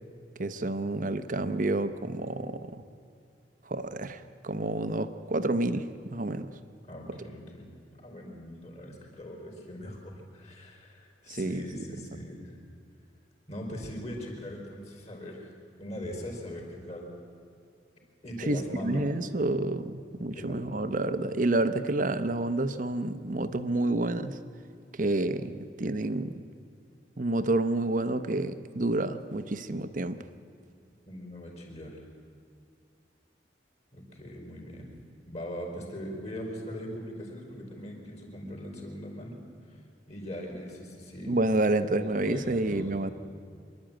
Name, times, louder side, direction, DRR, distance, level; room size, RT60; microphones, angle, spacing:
voice 1, 0.4-2.8 3.7-6.5 11.3-11.6 18.5-24.4 24.9-26.4 27.2-30.2 41.3-43.1, right 2 dB, 45° right, 10 dB, 0.9 m, -29 dB
voice 2, 6.9-12.6 13.5-15.5 15.8-17.1 18.2-19.1 20.3-20.7 31.1-32.0 33.9-34.9 35.3-39.4 39.7-39.8 40.1-41.4 42.0-42.9, equal, 35° left, 1 dB, 4.3 m, -40 dB
25.0 x 12.0 x 9.0 m, 2.4 s
head